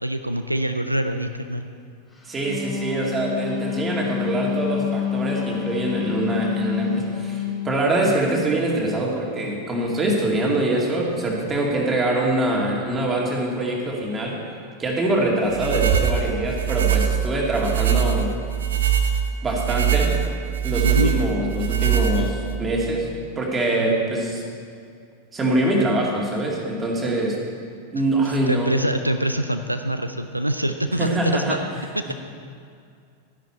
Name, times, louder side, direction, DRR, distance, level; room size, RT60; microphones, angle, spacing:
voice 1, 0.0-1.7 17.9-18.1 20.8-21.1 28.5-31.6 32.0-32.1, right 1 dB, 85° right, 7 dB, 0.4 m, -24 dB
Wind instrument woodwind instrument, 2.3-7.6, left 9 dB, 10° left, 3.4 m, -27 dB
voice 2, 2.3-14.4 14.8-18.3 19.4-20.1 20.6-23.1 23.4-24.4 25.3-27.4 27.9-28.7 31.0-31.6 32.1-32.2, right 1 dB, 15° right, -2 dB, 2.3 m, -24 dB
sound 1, 15.5-22.6, right 8 dB, 60° right, 0.8 m, -22 dB
12.5 x 10.5 x 4.4 m, 2.3 s
figure-of-eight pair, 90°, 0 cm